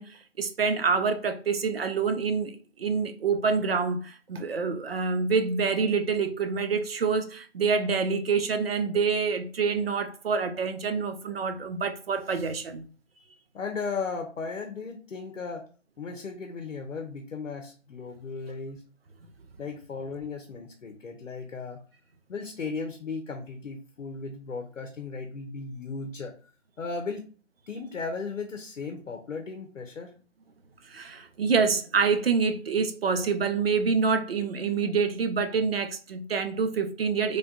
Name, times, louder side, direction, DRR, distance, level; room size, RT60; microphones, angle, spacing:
voice 1, 0.0-12.9 30.8-37.4, right 5 dB, 55° right, 0.5 m, -27 dB
voice 2, 13.5-15.7 16.0-18.8 19.6-21.8 22.3-26.5 26.8-27.3 27.7-30.1, left 4 dB, 85° left, 0.7 m, -36 dB
3.2 x 2.2 x 2.7 m
figure-of-eight pair, 150°, 37 cm